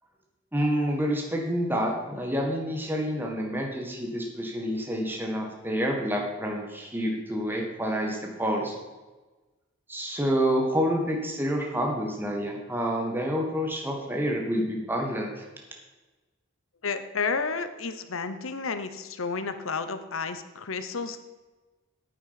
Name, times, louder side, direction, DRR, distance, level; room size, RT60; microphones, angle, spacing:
voice 1, 0.5-8.7 9.9-15.4, equal, 10° right, 0 dB, 1.8 m, -28 dB
voice 2, 16.8-21.2, left 4 dB, 85° left, 10 dB, 0.9 m, -31 dB
9.3 x 8.7 x 5.8 m, 1.2 s
head